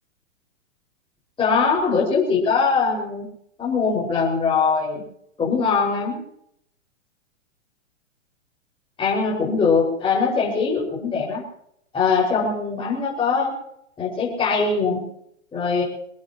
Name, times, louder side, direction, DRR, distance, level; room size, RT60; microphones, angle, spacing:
voice 1, 1.4-3.3 3.6-5.0 5.4-6.2 9.0-11.4 11.9-13.5 14.0-15.1 15.5-15.8, left 5 dB, 15° left, -5 dB, 5.9 m, -21 dB
25.0 x 17.5 x 3.1 m, 0.72 s
figure-of-eight pair, 115°, 38 cm